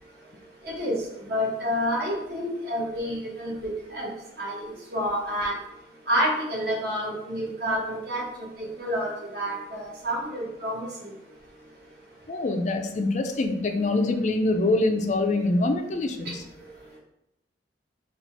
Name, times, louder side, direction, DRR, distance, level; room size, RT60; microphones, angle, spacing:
voice 1, 0.6-5.6 6.0-11.2 16.2-17.0, equal, 55° right, -4 dB, 1.4 m, -29 dB
voice 2, 12.3-16.4, left 2 dB, 40° left, 5 dB, 0.4 m, -24 dB
4.1 x 2.4 x 4.4 m, 0.82 s
head